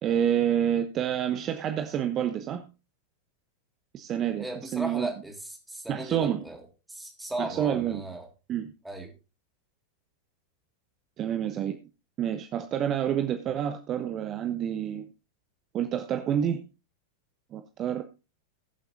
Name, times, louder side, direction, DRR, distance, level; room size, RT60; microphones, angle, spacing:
voice 1, 0.0-2.7 3.9-5.1 5.9-6.4 7.4-8.0 8.5-8.7 11.2-11.8 12.2-15.1 15.7-16.6 17.5-18.0, right 9 dB, 30° right, 1.0 m, -28 dB
voice 2, 4.4-6.6 6.9-8.3 8.8-9.1, right 1 dB, 5° right, 3.6 m, -37 dB
21.0 x 7.6 x 2.7 m
figure-of-eight pair, 90°, 0 cm